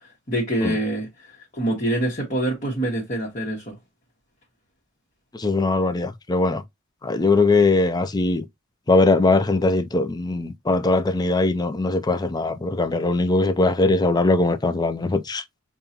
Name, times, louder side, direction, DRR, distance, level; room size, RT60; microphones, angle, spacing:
voice 1, 0.0-3.8, right 1 dB, 40° left, 1.2 m, -26 dB
voice 2, 5.3-6.6 7.0-8.4 8.9-15.4, left 3 dB, 20° left, 0.4 m, -20 dB
5.3 x 2.4 x 2.8 m
head